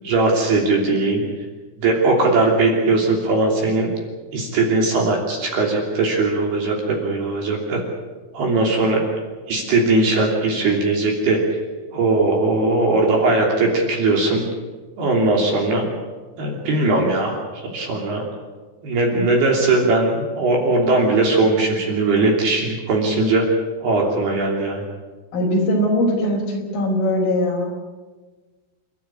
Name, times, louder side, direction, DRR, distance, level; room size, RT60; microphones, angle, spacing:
voice 1, 0.0-1.2 1.8-3.9 4.3-7.8 8.3-9.0 9.5-11.6 11.9-14.4 15.0-15.8 16.4-18.2 18.8-23.5 23.8-24.8, right 2 dB, 55° right, 1 dB, 4.7 m, -19 dB
voice 2, 25.3-27.7, left 1 dB, 45° left, 0 dB, 6.0 m, -20 dB
29.0 x 12.0 x 10.0 m, 1.3 s
omnidirectional pair, 5.9 m